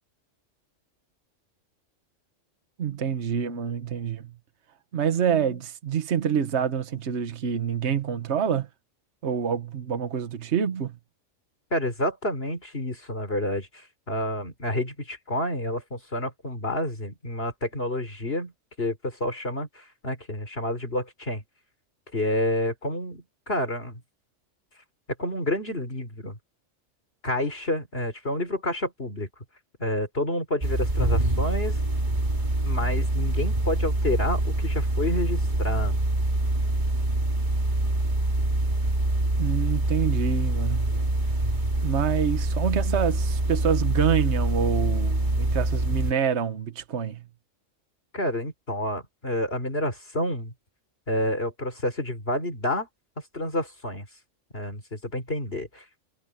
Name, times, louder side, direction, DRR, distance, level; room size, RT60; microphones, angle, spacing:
voice 1, 2.8-4.3 4.9-8.7 9.2-11.0 39.4-41.0 41.8-47.2, right 7 dB, 60° right, 1.4 m, -27 dB
voice 2, 11.7-18.5 18.8-21.4 22.1-24.0 25.2-26.4 27.2-29.3 29.8-31.8 32.6-36.0 48.1-50.5 51.1-52.9 53.3-54.1 54.5-56.0, left 1 dB, 50° left, 4.2 m, -29 dB
sound 1, 30.6-46.1, right 1 dB, 40° right, 2.4 m, -25 dB
omnidirectional pair, 1.3 m